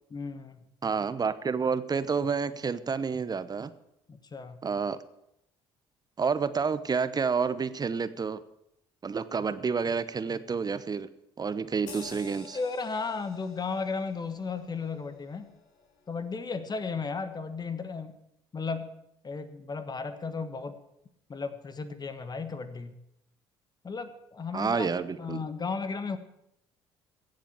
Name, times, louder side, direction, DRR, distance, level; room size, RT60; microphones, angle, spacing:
voice 1, 0.1-0.6 4.1-4.6 12.5-15.5 16.1-18.2 18.5-18.9 19.2-20.8 21.3-23.0 23.8-24.9 25.2-26.2, left 4 dB, 30° left, 10 dB, 1.5 m, -34 dB
voice 2, 0.8-3.7 4.6-5.0 6.2-8.4 9.0-11.1 11.4-12.6 24.5-25.4, right 5 dB, 30° right, 14 dB, 1.0 m, -29 dB
sound 1, 11.9-16.8 17.3-17.4, left 5 dB, 65° left, 3.6 m, -51 dB
16.0 x 7.6 x 7.2 m, 0.82 s
hypercardioid pair, 55°, 13 cm